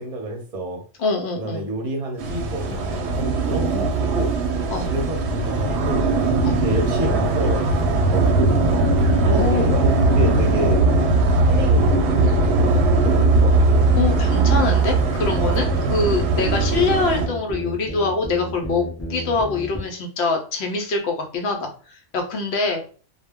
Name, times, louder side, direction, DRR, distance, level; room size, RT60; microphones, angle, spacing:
voice 1, 0.0-0.8 1.3-4.3 4.8-6.0 6.4-7.6 8.1-8.5 9.2-10.8 11.4-12.4 13.0-13.7, equal, 40° right, 1 dB, 0.7 m, -28 dB
voice 2, 1.0-1.7 4.7-4.9 6.4-6.6 9.3-9.7 13.9-18.8 19.1-22.8, left 3 dB, 65° left, 3 dB, 0.8 m, -24 dB
sound 1, 2.2-17.3, right 2 dB, 70° right, 0.8 m, -19 dB
sound 2, 6.4-19.9, left 1 dB, 20° left, 0.5 m, -31 dB
2.2 x 2.1 x 3.5 m, 0.40 s
omnidirectional pair, 1.3 m